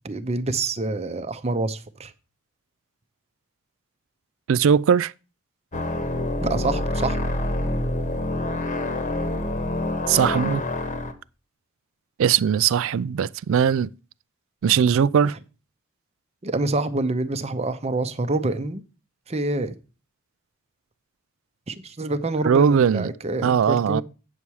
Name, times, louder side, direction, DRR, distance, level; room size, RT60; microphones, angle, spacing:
voice 1, 0.0-2.1 6.4-7.2 16.4-18.8 19.3-19.7 21.7-24.0, right 2 dB, 30° right, 0.7 m, -26 dB
voice 2, 4.5-5.1 10.1-10.6 12.2-13.9 14.6-15.4 22.4-23.1 23.4-24.0, right 7 dB, 65° right, 0.3 m, -19 dB
sound 1, 5.7-11.1, left 1 dB, 35° left, 1.1 m, -26 dB
8.6 x 7.0 x 4.7 m
head